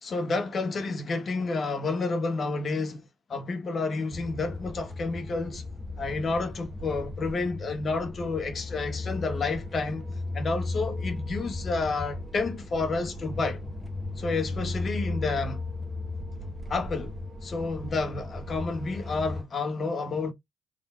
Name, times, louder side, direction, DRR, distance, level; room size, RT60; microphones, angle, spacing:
voice 1, 0.0-3.0 3.3-5.6 6.0-10.1 10.3-13.6 14.2-15.6 16.7-17.1 17.4-20.3, left 3 dB, 50° left, 1.3 m, -30 dB
sound 1, 4.1-19.4, left 2 dB, 5° right, 1.4 m, -36 dB
3.7 x 3.5 x 2.5 m
hypercardioid pair, 50°, 0 cm